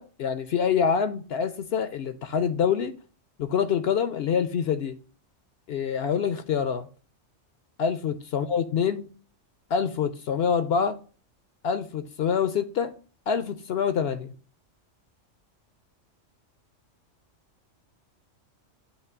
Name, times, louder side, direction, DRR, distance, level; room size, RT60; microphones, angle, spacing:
voice 1, 0.0-2.9 3.4-5.0 5.7-6.9 7.8-9.1 9.7-11.0 11.6-12.9 13.3-14.3, left 7 dB, 65° left, 0.7 m, -26 dB
8.2 x 3.0 x 6.0 m
omnidirectional pair, 1.3 m